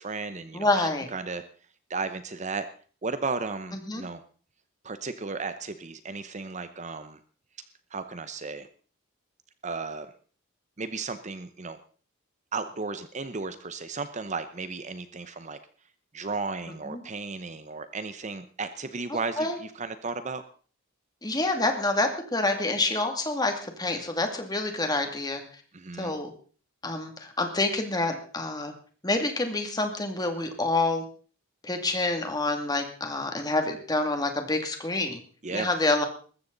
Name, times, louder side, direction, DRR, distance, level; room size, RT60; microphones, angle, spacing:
voice 1, 0.0-1.4 1.9-2.7 3.0-4.2 4.8-7.2 7.9-8.7 9.6-10.1 10.8-11.8 12.5-15.6 16.1-20.4 25.7-26.1 35.4-35.7, right 4 dB, 35° right, 11 dB, 0.8 m, -34 dB
voice 2, 0.5-1.1 3.7-4.0 16.8-17.0 19.1-19.6 21.2-25.6 26.0-26.3 26.8-28.7 29.0-31.0 31.6-35.2 35.5-36.0, left 2 dB, 20° left, 5 dB, 2.4 m, -27 dB
20.5 x 14.5 x 4.0 m, 0.42 s
head